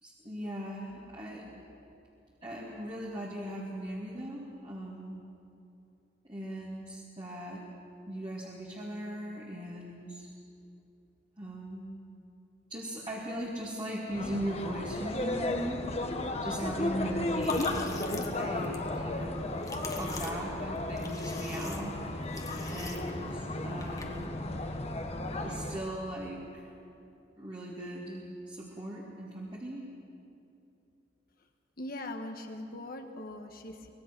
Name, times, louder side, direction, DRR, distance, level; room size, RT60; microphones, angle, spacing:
voice 1, 0.0-1.6 2.4-5.2 6.2-7.7 8.1-10.3 11.4-12.0 12.7-16.1 16.4-19.4 19.9-22.2 22.7-24.6 25.4-26.6 27.4-29.9, equal, 25° right, -4 dB, 2.4 m, -39 dB
sound 1, 14.1-25.9, left 2 dB, 35° left, 1.2 m, -34 dB
sound 2, 17.3-24.2, left 2 dB, 20° left, 1.5 m, -45 dB
voice 2, 31.8-33.9, left 1 dB, 50° left, 5 dB, 1.5 m, -41 dB
24.0 x 20.0 x 6.1 m, 2.7 s
head